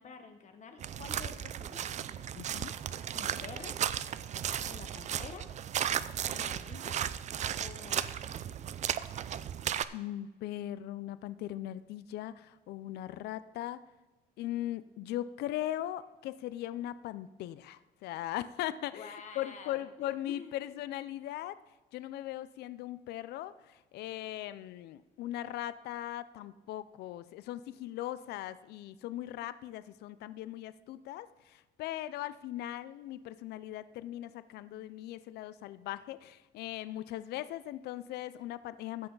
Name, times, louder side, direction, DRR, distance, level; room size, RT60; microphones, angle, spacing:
voice 1, 0.0-1.9 3.1-3.8 4.7-5.5 6.2-7.0 7.6-8.3 19.0-20.6, left 5 dB, 45° left, 7 dB, 0.9 m, -48 dB
sound 1, 0.8-9.8, right 9 dB, 45° right, 0.4 m, -35 dB
voice 2, 2.3-2.7 9.9-13.8 14.4-21.6 21.9-39.1, left 13 dB, 75° left, 15 dB, 0.5 m, -39 dB
15.0 x 5.8 x 3.9 m, 1.2 s
cardioid pair, 110°, 17 cm